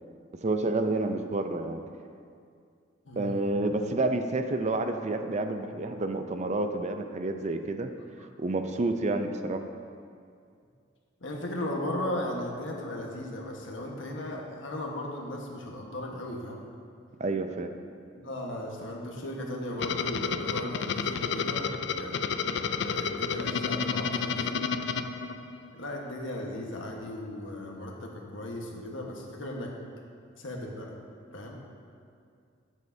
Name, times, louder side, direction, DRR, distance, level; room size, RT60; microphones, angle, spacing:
voice 1, 0.4-1.8 3.2-7.9 8.4-9.6 17.2-17.7, right 2 dB, 35° right, 7 dB, 0.5 m, -29 dB
voice 2, 3.0-3.4 11.2-16.6 18.1-22.2 22.8-24.6 25.7-29.7 30.4-30.9 31.3-31.6, left 1 dB, 80° left, -1 dB, 1.4 m, -36 dB
sound 1, 19.8-25.8, left 6 dB, 65° left, 0.4 m, -31 dB
13.5 x 8.2 x 2.8 m, 2.3 s
head